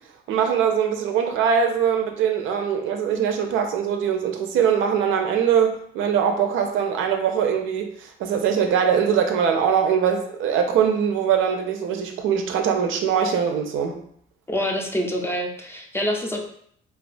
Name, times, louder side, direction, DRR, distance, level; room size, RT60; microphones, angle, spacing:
voice 1, 0.3-14.0, right 7 dB, 80° right, 4 dB, 0.4 m, -22 dB
voice 2, 14.5-16.4, equal, 10° left, 1 dB, 0.4 m, -26 dB
2.3 x 2.3 x 2.5 m, 0.65 s
cardioid pair, 90°, 20 cm